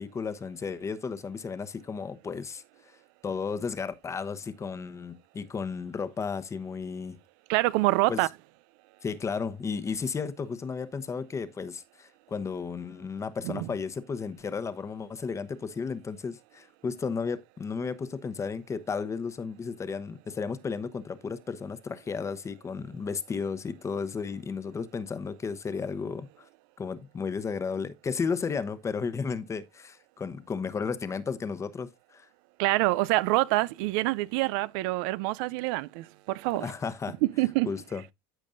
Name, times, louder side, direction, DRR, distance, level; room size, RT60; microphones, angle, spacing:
voice 1, 0.0-2.9 3.2-7.2 8.1-8.2 9.0-26.5 26.8-32.3 36.6-37.2 37.7-38.1, left 5 dB, 25° left, 1.0 m, -34 dB
voice 2, 7.5-8.3 13.4-13.7 32.6-36.7 37.2-37.7, right 20 dB, 80° right, 0.4 m, -26 dB
14.0 x 5.2 x 2.6 m
supercardioid pair, 105°, 11 cm